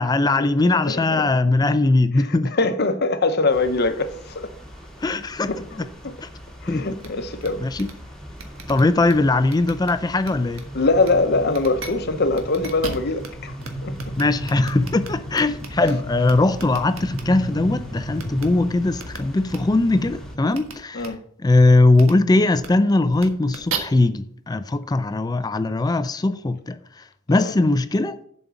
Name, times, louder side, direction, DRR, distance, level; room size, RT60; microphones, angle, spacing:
voice 1, 0.0-2.5 5.0-5.5 6.2-6.3 6.7-6.8 7.6-7.9 8.7-10.6 14.2-21.1 21.4-26.8 27.3-28.2, left 2 dB, 20° left, 0.4 m, -20 dB
voice 2, 0.9-1.2 2.2-4.5 5.4-5.6 6.0-6.2 6.6-7.6 10.7-13.5 13.8-14.2 20.9-21.2 27.3-27.5, left 3 dB, 50° left, 0.9 m, -23 dB
sound 1, 3.5-20.4, equal, 5° left, 1.5 m, -36 dB
sound 2, 7.0-7.1 7.4-7.5 7.7-7.9 8.4-9.1 9.5-9.9 10.2-10.6 11.0-11.1 11.5-11.9 12.3-13.3 13.6-13.7 13.9-15.9 16.2-17.2 18.2-18.4 19.0-19.2 19.5-19.6 20.5-20.7 21.0-21.1 21.9-22.1 22.5-22.7 23.1-23.8, right 5 dB, 90° right, 1.5 m, -35 dB
7.4 x 5.2 x 7.1 m
head